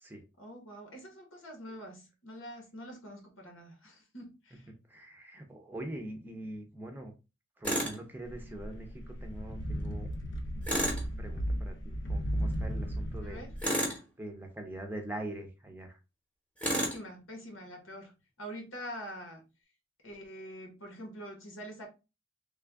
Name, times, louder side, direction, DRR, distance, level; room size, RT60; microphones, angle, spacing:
voice 1, 0.4-4.7 13.2-13.5 16.7-18.1 18.4-19.4 20.0-21.9, equal, 85° left, 1.3 m, -45 dB
voice 2, 4.9-7.1 7.6-13.4 14.2-16.0, right 1 dB, 10° right, 0.5 m, -43 dB
Tools, 7.6-8.0 10.6-11.1 13.6-14.1 16.6-17.0, equal, 5° left, 0.9 m, -30 dB
sound 1, 8.3-13.6, equal, 55° left, 0.6 m, -35 dB
3.3 x 2.4 x 3.4 m
head